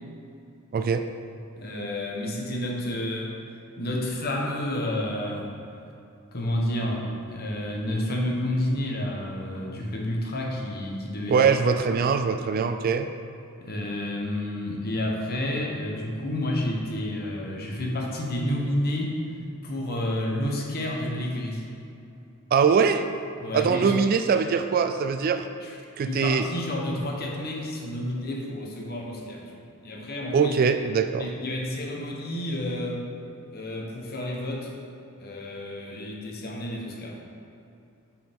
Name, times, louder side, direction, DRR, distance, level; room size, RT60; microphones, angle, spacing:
voice 1, 0.7-1.0 11.3-13.1 22.5-23.1 23.5-25.5 26.0-26.5 30.3-31.3, right 6 dB, 45° right, 8 dB, 0.3 m, -22 dB
voice 2, 1.6-3.3 3.8-5.5 6.3-11.5 11.9-12.0 13.6-19.2 19.6-21.6 23.4-24.0 25.6-25.7 26.1-30.6 31.2-33.1 33.5-34.7 35.2-37.2, left 1 dB, 45° left, -1 dB, 1.1 m, -30 dB
8.9 x 4.8 x 3.6 m, 2.7 s
head